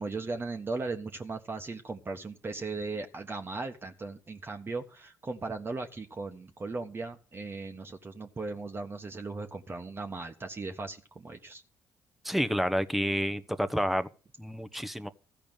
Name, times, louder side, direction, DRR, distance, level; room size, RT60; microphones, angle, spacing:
voice 1, 0.0-11.6, right 3 dB, 30° right, 1.3 m, -37 dB
voice 2, 12.2-14.1 14.4-15.1, equal, ahead, 1.1 m, -29 dB
14.5 x 5.0 x 9.0 m
hypercardioid pair, 50°, 7 cm